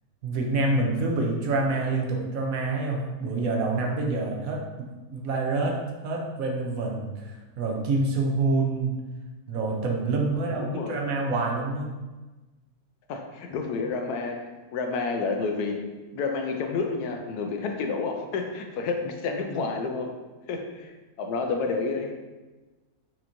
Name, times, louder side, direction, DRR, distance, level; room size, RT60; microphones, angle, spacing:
voice 1, 0.2-5.8 6.0-9.0 9.5-11.9, right 3 dB, 70° right, 0 dB, 1.0 m, -27 dB
voice 2, 10.6-11.0 13.1-15.8 16.1-20.1 20.5-22.1, left 4 dB, 90° left, 5 dB, 1.1 m, -30 dB
5.8 x 2.9 x 2.5 m, 1.2 s
omnidirectional pair, 1.6 m